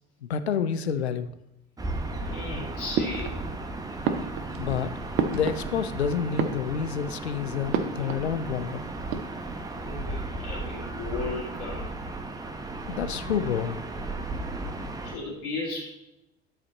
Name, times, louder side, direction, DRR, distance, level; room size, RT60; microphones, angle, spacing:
voice 1, 0.3-1.3 4.6-4.9 5.3-8.8 12.9-13.8, left 7 dB, 80° left, 11 dB, 0.5 m, -28 dB
Gull seagull / Ocean, 1.8-15.2, right 2 dB, 10° right, 0.8 m, -35 dB
voice 2, 2.2-3.4 9.7-12.0 15.0-15.9, left 3 dB, 60° left, -5 dB, 2.5 m, -36 dB
sound 1, 2.9-3.7 4.0-6.0 6.3-7.1 7.7-8.3 8.6-8.7 9.0-9.7, right 6 dB, 40° right, 0.7 m, -31 dB
8.9 x 4.2 x 4.2 m, 0.87 s
figure-of-eight pair, 60°, 32 cm